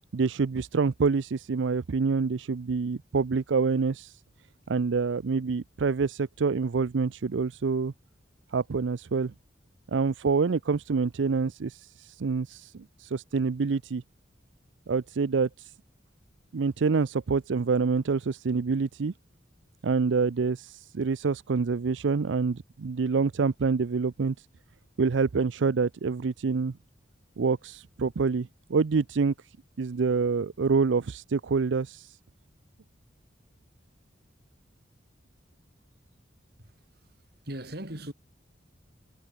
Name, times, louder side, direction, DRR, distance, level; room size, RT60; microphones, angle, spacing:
voice 1, 0.1-4.2 4.7-7.9 8.5-9.3 9.9-14.0 14.9-15.7 16.5-19.1 19.8-24.5 25.0-26.8 27.4-29.3 29.8-32.2, right 4 dB, 90° right, 0.5 m, -27 dB
voice 2, 36.6-38.1, right 1 dB, 60° right, 5.2 m, -40 dB
head